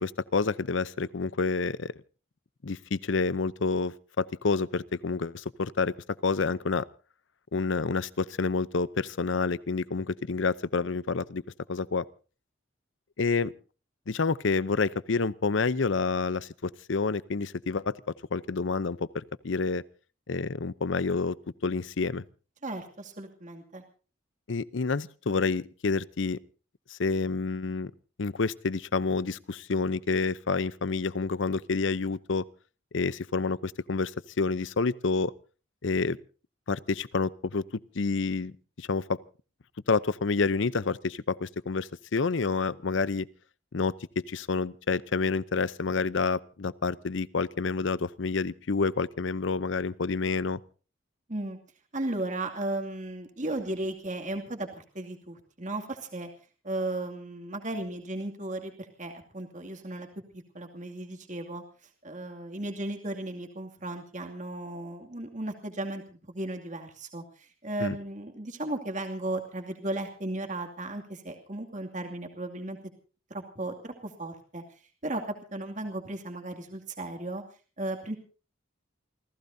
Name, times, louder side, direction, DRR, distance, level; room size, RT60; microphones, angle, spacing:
voice 1, 0.0-1.9 2.6-5.9 6.2-6.8 7.5-11.4 11.7-12.0 13.2-13.5 14.1-17.9 18.3-19.8 20.3-21.4 21.6-22.2 24.5-26.4 27.0-27.9 28.2-32.4 32.9-34.1 34.4-35.3 35.8-36.2 36.7-37.6 38.0-38.5 38.8-39.2 39.9-43.3 43.7-43.9 44.3-50.6 67.8-68.0, left 4 dB, 70° left, 0.7 m, -28 dB
voice 2, 22.6-23.8 51.3-51.6 51.9-56.3 56.6-60.1 60.3-66.0 66.3-72.8 73.3-74.6 75.0-77.4 77.8-78.2, right 2 dB, 40° right, 2.4 m, -35 dB
29.0 x 16.0 x 2.7 m
head